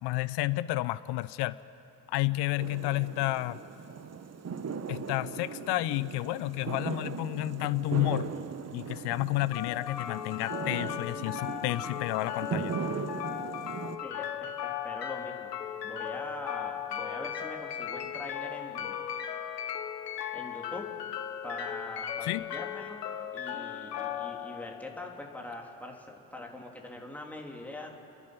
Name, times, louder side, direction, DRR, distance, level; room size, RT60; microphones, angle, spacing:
voice 1, 0.0-1.6 2.1-3.6 4.9-8.3 8.7-12.7 22.2-22.4, left 18 dB, 60° left, 17 dB, 0.6 m, -31 dB
sound 1, 2.6-14.0, right 6 dB, 35° right, 1.2 m, -38 dB
sound 2, 9.5-25.5, left 9 dB, 90° left, 0.9 m, -37 dB
voice 2, 14.0-15.5 15.8-19.0 20.3-20.9 21.4-23.0 23.3-27.9, left 1 dB, 5° left, 0 dB, 3.3 m, -43 dB
29.5 x 11.0 x 9.2 m, 2.8 s
hypercardioid pair, 50°, 47 cm